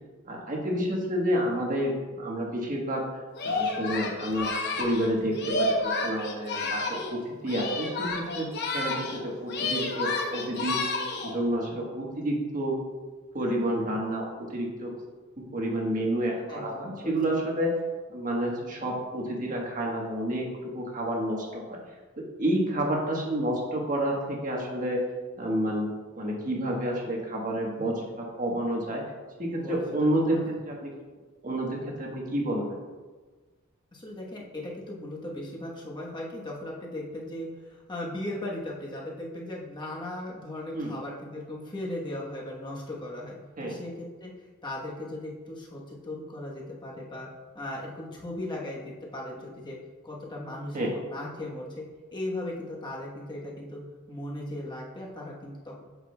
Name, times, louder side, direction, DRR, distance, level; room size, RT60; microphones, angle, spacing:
voice 1, 0.3-3.0 3.4-4.5 4.8-8.5 8.7-12.8 13.3-14.9 15.4-17.7 18.1-20.4 20.7-21.8 22.2-25.0 25.4-25.9 26.2-29.0 29.4-30.4 30.6-30.9 31.4-32.6 40.7-40.9 43.6-43.7 50.7-50.9, right 1 dB, 40° right, -1 dB, 1.3 m, -29 dB
Singing, 3.3-7.2 7.4-9.2 9.5-11.4, left 2 dB, 55° left, 0.9 m, -30 dB
voice 2, 16.5-17.4 29.5-30.5 33.9-43.4 43.6-44.3 44.6-47.3 47.5-49.8 50.0-51.8 52.1-53.8 54.1-55.8, left 1 dB, 20° left, -3 dB, 1.1 m, -37 dB
8.0 x 6.1 x 2.3 m, 1.4 s
head